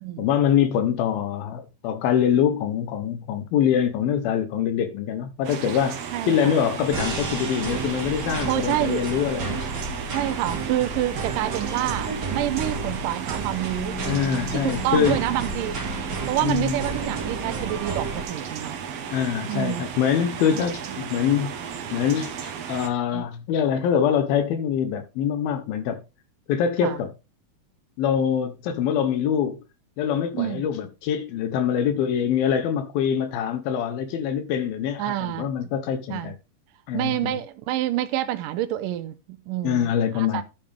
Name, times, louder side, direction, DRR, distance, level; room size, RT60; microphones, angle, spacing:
voice 1, 0.2-10.0 14.1-15.2 16.4-16.8 19.1-21.5 21.9-26.0 26.5-27.1 28.0-29.6 30.0-36.3 36.9-37.4 39.6-40.4, left 8 dB, 80° left, 2.8 m, -24 dB
sound 1, 5.4-22.9, right 7 dB, 60° right, 1.7 m, -35 dB
voice 2, 6.1-6.6 8.4-9.1 10.1-15.8 16.3-18.8 19.5-19.8 20.5-20.7 23.1-23.3 26.8-27.0 30.3-30.7 35.0-35.5 36.1-36.3 36.9-39.9 40.1-40.4, right 13 dB, 75° right, 2.2 m, -28 dB
sound 2, 6.9-18.2, right 4 dB, 30° right, 2.5 m, -32 dB
Piano, 13.8-21.1, left 1 dB, 10° left, 1.1 m, -42 dB
12.0 x 7.7 x 3.5 m
omnidirectional pair, 4.2 m